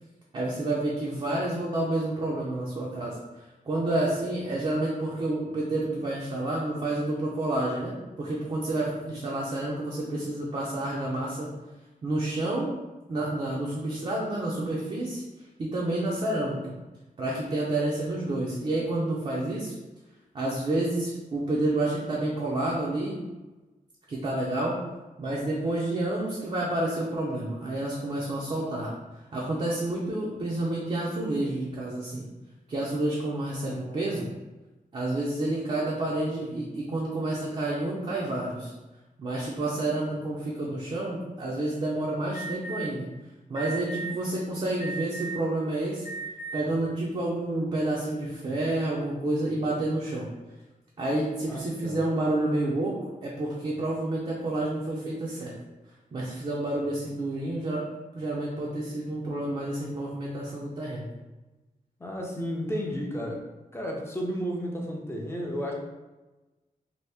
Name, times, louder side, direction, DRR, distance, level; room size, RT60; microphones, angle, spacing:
voice 1, 0.3-11.5 12.0-12.7 13.1-15.2 15.6-16.7 17.2-19.7 20.3-23.2 24.1-24.8 25.2-28.9 29.3-32.2 32.7-34.3 34.9-38.7 39.2-43.1 43.5-46.1 46.5-50.3 51.0-55.5 56.1-57.9 58.1-61.0, right 2 dB, 40° right, -4 dB, 0.5 m, -29 dB
voice 2, 33.6-34.3 51.8-52.0 62.0-63.4 63.7-65.7, equal, 15° left, -1 dB, 0.5 m, -33 dB
Alarm, 42.3-42.9 43.6-44.1 44.8-45.5 46.0-46.6, right 4 dB, 70° left, 0.8 m, -36 dB
2.8 x 2.6 x 3.3 m, 1.1 s
wide cardioid pair, 165°, 15 cm